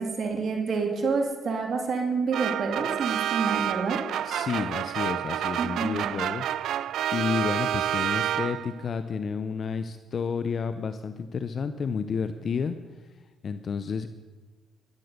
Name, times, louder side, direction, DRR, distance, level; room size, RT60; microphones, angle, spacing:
voice 1, 0.0-4.0 5.6-6.1, right 4 dB, 55° right, 3 dB, 2.2 m, -28 dB
sound 1, 2.3-8.9, right 11 dB, 75° right, 0.3 m, -29 dB
voice 2, 4.2-6.8 7.1-12.8 13.4-14.1, left 6 dB, 50° left, 10 dB, 0.7 m, -31 dB
12.0 x 11.5 x 6.6 m, 1.2 s
cardioid pair, 90°, 0 cm